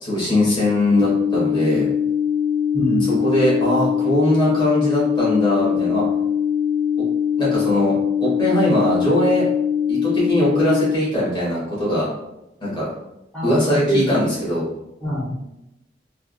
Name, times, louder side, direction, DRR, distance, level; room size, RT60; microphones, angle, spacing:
voice 1, 0.0-1.9 3.2-6.0 7.4-9.5 9.9-12.1 12.6-12.9 13.4-14.6, equal, 25° left, -7 dB, 1.3 m, -20 dB
sound 1, 0.9-10.9, left 8 dB, 60° left, 1.2 m, -21 dB
voice 2, 2.7-3.1 13.3-14.2 15.0-15.3, equal, 5° left, -9 dB, 1.2 m, -24 dB
3.4 x 2.4 x 2.3 m, 0.89 s
head